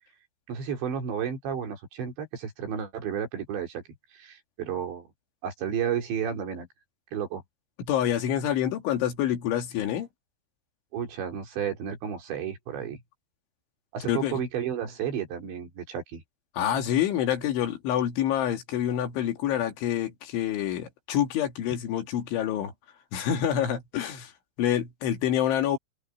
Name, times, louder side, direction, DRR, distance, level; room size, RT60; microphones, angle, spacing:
voice 1, 0.5-3.8 4.1-5.1 5.4-6.7 7.1-7.4 10.9-13.0 13.9-16.2, right 8 dB, 65° right, 6.1 m, -32 dB
voice 2, 7.8-10.1 14.1-14.4 16.6-22.7 23.1-24.3 24.6-25.8, left 10 dB, 75° left, 4.7 m, -27 dB
open air
omnidirectional pair, 5.6 m